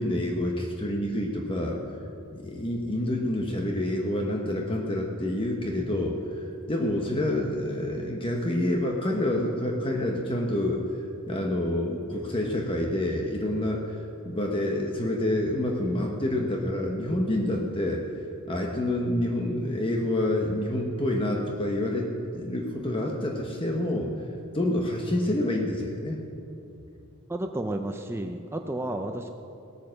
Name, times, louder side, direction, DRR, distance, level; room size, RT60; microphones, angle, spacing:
voice 1, 0.0-1.8 2.3-10.8 11.3-14.0 14.2-18.0 18.5-24.1 24.5-26.2, left 1 dB, 25° left, 0 dB, 1.1 m, -28 dB
voice 2, 27.3-29.3, right 1 dB, 10° right, 5 dB, 0.5 m, -32 dB
18.5 x 9.0 x 6.4 m, 2.8 s
head